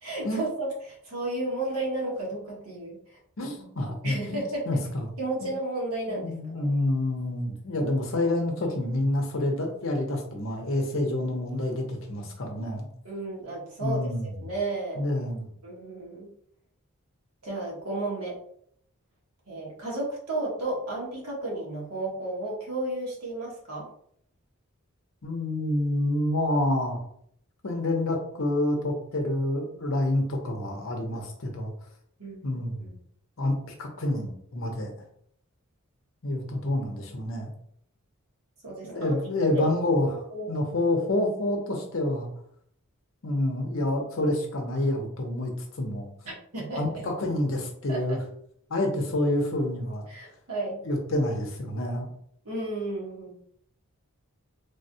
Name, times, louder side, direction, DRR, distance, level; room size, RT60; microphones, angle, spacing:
voice 1, 0.0-3.0 4.0-4.6 5.2-6.7 13.0-15.0 15.6-16.3 17.4-18.4 19.5-23.9 32.2-32.9 38.6-39.7 40.0-40.5 46.2-46.8 47.9-48.0 50.1-50.8 52.4-53.4, right 2 dB, 85° right, -4 dB, 1.3 m, -33 dB
voice 2, 3.4-5.1 6.1-12.9 13.8-14.5 14.9-15.5 25.2-27.0 27.6-31.7 32.4-32.9 33.4-33.5 33.8-34.9 36.2-37.5 38.8-40.2 40.5-42.3 43.2-45.5 45.8-46.1 46.7-48.2 48.7-50.1 50.8-52.1, left 1 dB, 60° left, 2 dB, 0.7 m, -28 dB
3.4 x 2.2 x 2.7 m, 0.66 s
head